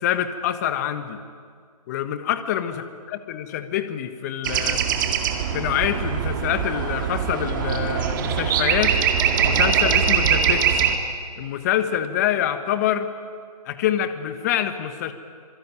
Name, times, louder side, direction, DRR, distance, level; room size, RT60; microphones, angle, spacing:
voice 1, 0.0-1.2 1.9-2.7 3.1-4.8 5.5-9.0 9.4-10.8 11.4-13.1 13.6-15.1, left 11 dB, 25° left, 10 dB, 1.3 m, -25 dB
sound 1, 4.4-11.0, right 7 dB, 30° right, 2.3 m, -22 dB
26.0 x 24.5 x 9.2 m, 2.1 s
figure-of-eight pair, 155°, 21 cm